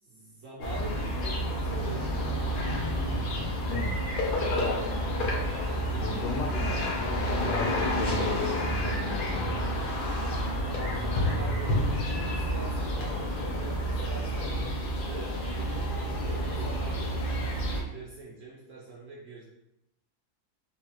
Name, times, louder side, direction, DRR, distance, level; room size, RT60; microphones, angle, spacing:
voice 1, 0.0-2.5 4.6-5.2 10.6-12.0 12.3-14.5 14.9-15.4 16.1-19.4, right 3 dB, 65° right, -5 dB, 0.9 m, -44 dB
sound 1, 0.6-17.8, equal, 60° left, 0.5 m, -29 dB
voice 2, 3.7-4.0 4.6-5.0 6.0-9.8, left 4 dB, 85° left, 3 dB, 1.1 m, -36 dB
3.7 x 2.3 x 2.9 m, 0.85 s
omnidirectional pair, 1.6 m